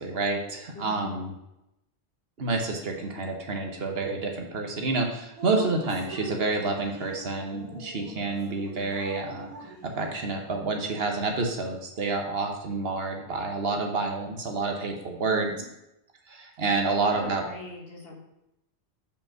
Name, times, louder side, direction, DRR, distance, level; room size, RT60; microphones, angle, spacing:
voice 1, 0.0-1.3 2.4-15.5 16.3-17.4, right 3 dB, 60° right, 3 dB, 1.3 m, -29 dB
voice 2, 0.7-1.2 5.6-5.8 6.5-6.6 15.3-15.7 16.8-18.2, left 2 dB, 60° left, 0 dB, 1.5 m, -41 dB
Drip, 5.4-10.6, right 2 dB, 30° right, 2.7 m, -42 dB
5.3 x 5.2 x 6.0 m, 0.86 s
omnidirectional pair, 1.1 m